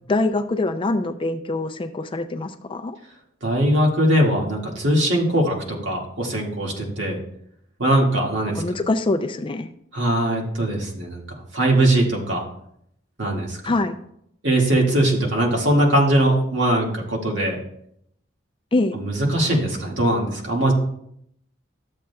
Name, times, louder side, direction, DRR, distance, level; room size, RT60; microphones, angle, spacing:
voice 1, 0.1-3.0 8.5-9.7 13.6-14.0 18.7-19.0, left 2 dB, 25° left, 8 dB, 0.4 m, -24 dB
voice 2, 3.4-7.2 7.8-8.6 9.9-11.2 11.5-12.4 13.2-13.6 14.4-17.6 18.9-20.7, right 1 dB, 65° right, -1 dB, 1.9 m, -20 dB
13.0 x 7.4 x 2.3 m, 0.73 s
head